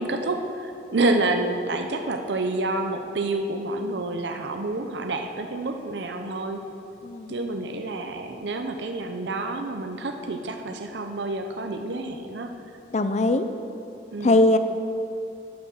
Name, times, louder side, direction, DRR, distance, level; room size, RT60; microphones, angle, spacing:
voice 1, 0.0-6.6 7.3-12.5 14.1-14.4, right 2 dB, 65° right, 5 dB, 0.7 m, -28 dB
voice 2, 12.9-13.5 14.2-14.6, left 2 dB, 40° left, 10 dB, 0.5 m, -20 dB
9.5 x 8.2 x 6.4 m, 2.8 s
head